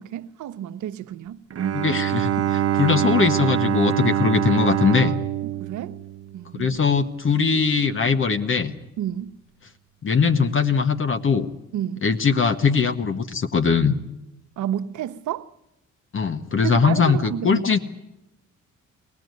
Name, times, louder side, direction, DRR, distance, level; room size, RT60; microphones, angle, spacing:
voice 1, 0.0-1.4 5.4-5.9 6.3-6.7 9.0-9.3 11.7-12.1 14.6-15.5 16.6-17.7, right 11 dB, 75° right, 0.9 m, -30 dB
Bowed string instrument, 1.5-6.8, right 12 dB, 50° right, 1.0 m, -24 dB
voice 2, 1.7-5.1 6.5-8.7 10.0-11.5 12.0-13.9 16.1-17.8, left 5 dB, 40° left, 1.3 m, -21 dB
23.5 x 18.0 x 9.5 m
cardioid pair, 90°, 30 cm